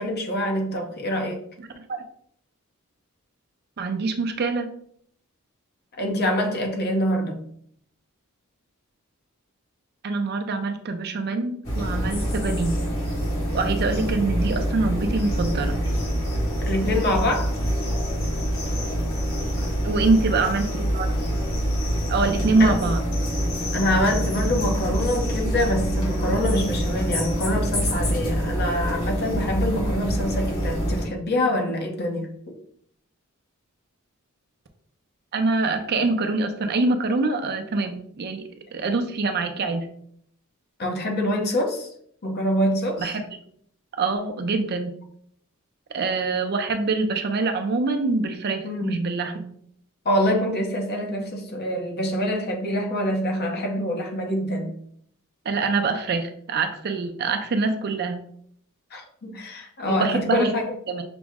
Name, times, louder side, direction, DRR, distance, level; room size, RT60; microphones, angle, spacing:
voice 1, 0.0-1.4 6.0-7.4 16.7-17.5 22.6-22.8 23.7-32.5 40.8-41.9 42.2-43.1 48.6-49.1 50.0-54.7 58.9-60.7, left 1 dB, 50° left, 0.8 m, -25 dB
voice 2, 3.8-4.7 10.0-12.7 13.5-15.8 19.8-21.1 22.1-23.0 35.3-38.4 38.7-39.9 43.0-43.3 44.0-44.9 45.9-49.5 55.4-58.2 59.9-60.6 60.9-61.0, right 3 dB, 50° right, 0.5 m, -24 dB
sound 1, 11.6-31.0, equal, 65° left, 1.6 m, -25 dB
5.9 x 2.0 x 3.5 m
head